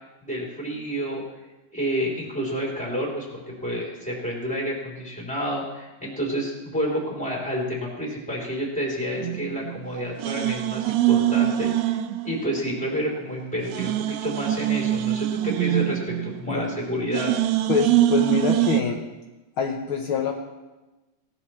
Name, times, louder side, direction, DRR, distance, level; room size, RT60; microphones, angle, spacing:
voice 1, 0.2-1.2 1.7-3.3 3.6-17.3, equal, ahead, -3 dB, 3.2 m, -29 dB
sound 1, 9.2-9.9 10.2-12.8 13.1-13.2 13.6-16.7 17.1-18.8, right 13 dB, 90° right, 1.5 m, -24 dB
voice 2, 17.7-19.0 19.6-20.3, left 6 dB, 80° left, 2 dB, 1.1 m, -25 dB
18.0 x 13.0 x 3.2 m, 1.1 s
omnidirectional pair, 3.6 m